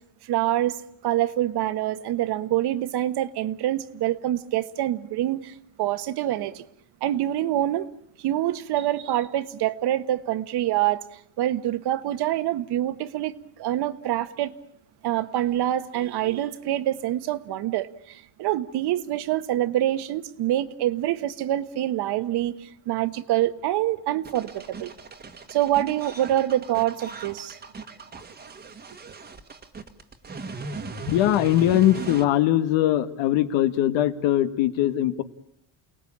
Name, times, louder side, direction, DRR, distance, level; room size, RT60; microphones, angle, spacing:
voice 1, 0.3-0.8 1.0-6.6 7.0-7.9 8.2-11.0 11.4-14.5 15.0-24.9 25.5-27.6, right 13 dB, 55° right, 1.4 m, -26 dB
sound 1, 24.2-32.2, right 4 dB, 20° right, 1.6 m, -38 dB
voice 2, 31.0-35.2, left 13 dB, 65° left, 1.8 m, -21 dB
29.0 x 19.0 x 8.7 m
cardioid pair, 150°, 48 cm